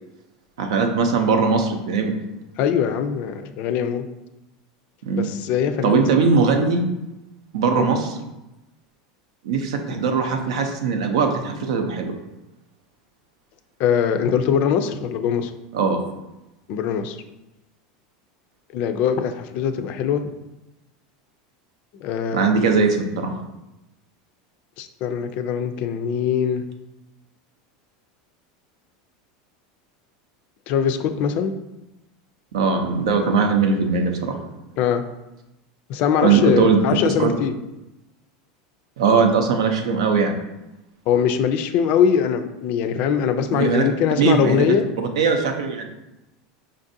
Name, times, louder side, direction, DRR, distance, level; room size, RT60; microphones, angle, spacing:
voice 1, 0.6-2.1 5.0-5.3 5.8-6.9 7.5-8.2 9.4-12.1 15.7-16.0 22.3-23.4 32.5-34.4 36.2-36.8 37.2-37.3 39.0-40.3 43.5-43.8 44.2-44.7 45.2-45.9, right 5 dB, 85° right, 5 dB, 0.6 m, -20 dB
voice 2, 2.6-4.1 5.1-6.0 13.8-15.5 16.7-17.2 18.7-20.3 22.0-22.5 24.8-26.6 30.7-31.5 34.8-35.0 35.9-37.5 41.1-44.9, left 8 dB, 55° left, 9 dB, 0.3 m, -22 dB
5.2 x 2.5 x 2.6 m, 0.96 s
supercardioid pair, 125°, 3 cm